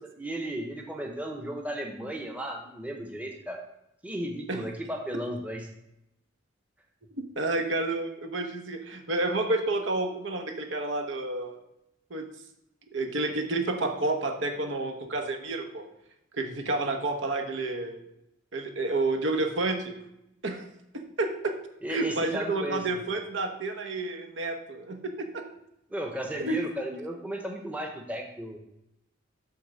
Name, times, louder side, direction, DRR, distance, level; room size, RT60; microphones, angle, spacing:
voice 1, 0.0-3.6 4.0-5.7 21.8-22.8 25.9-28.6, right 1 dB, 10° right, 2 dB, 0.9 m, -35 dB
voice 2, 7.4-11.6 12.1-12.3 12.9-15.9 16.3-18.0 18.5-19.9 20.4-20.6 20.9-21.5 21.9-25.4 26.5-26.7, right 2 dB, 70° right, 5 dB, 1.0 m, -30 dB
8.4 x 3.6 x 6.6 m, 0.84 s
head